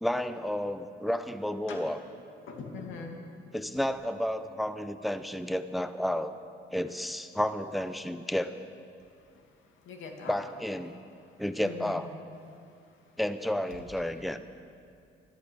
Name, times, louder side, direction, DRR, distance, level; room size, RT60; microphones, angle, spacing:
voice 1, 0.0-2.0 3.5-6.3 6.7-8.6 10.3-11.0 11.4-12.1 13.2-14.4, left 1 dB, ahead, 11 dB, 0.7 m, -31 dB
voice 2, 2.5-3.2 9.3-9.4 9.8-10.4 11.6-12.1, left 5 dB, 80° left, 2 dB, 2.4 m, -41 dB
14.0 x 12.5 x 8.4 m, 2.4 s
cardioid pair, 90°, 20 cm